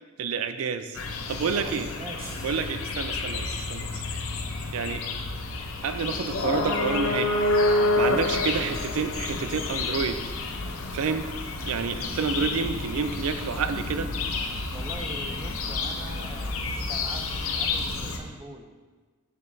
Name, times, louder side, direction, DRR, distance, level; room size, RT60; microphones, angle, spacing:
voice 1, 0.2-1.0 1.3-1.9 2.4-4.0 4.7-5.0 5.8-7.4 8.0-10.2 10.9-11.2 11.7-14.1, right 5 dB, 85° right, 10 dB, 0.4 m, -29 dB
sound 1, 0.9-18.2, left 2 dB, 80° left, 0.7 m, -29 dB
voice 2, 1.5-2.4 4.9-5.1 8.3-8.5 14.5-18.7, right 2 dB, 20° right, 4 dB, 0.5 m, -43 dB
sound 2, 2.2-3.7, right 1 dB, 45° right, 1.9 m, -47 dB
6.9 x 6.6 x 2.7 m, 1.3 s
head